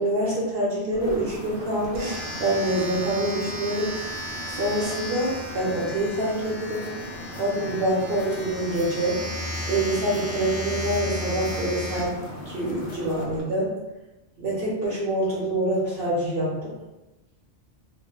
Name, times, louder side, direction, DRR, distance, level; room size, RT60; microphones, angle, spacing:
voice 1, 0.0-4.0 4.4-6.9 7.3-9.2 9.7-13.7 14.4-16.7, right 1 dB, 60° right, -6 dB, 0.9 m, -26 dB
Domestic sounds home sounds, 0.9-13.4, equal, 45° right, 0.5 m, -35 dB
sound 1, 1.0-13.3, left 1 dB, 60° left, 0.7 m, -40 dB
2.4 x 2.0 x 3.7 m, 1.0 s
omnidirectional pair, 1.2 m